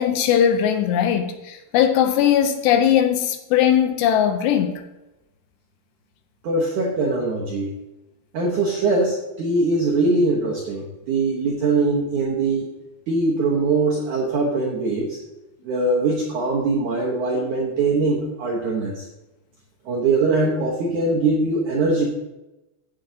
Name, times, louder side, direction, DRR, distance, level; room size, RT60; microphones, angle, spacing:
voice 1, 0.0-4.8, left 9 dB, 80° left, 2.7 m, -19 dB
voice 2, 6.4-7.7 8.3-12.7 13.1-15.2 15.6-19.0 19.9-22.1, right 3 dB, 75° right, 1.8 m, -22 dB
15.5 x 7.8 x 2.8 m
omnidirectional pair, 5.2 m